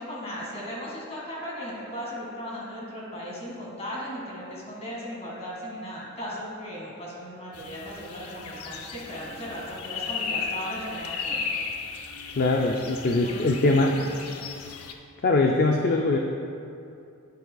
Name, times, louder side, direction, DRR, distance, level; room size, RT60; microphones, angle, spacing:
voice 1, 0.0-11.4 13.1-14.1, equal, 30° left, -5 dB, 2.0 m, -37 dB
sound 1, 7.5-14.9, left 5 dB, 85° left, 0.6 m, -35 dB
voice 2, 12.3-14.0 15.2-16.2, left 2 dB, 45° left, 1 dB, 0.4 m, -22 dB
10.0 x 9.6 x 2.3 m, 2.6 s
head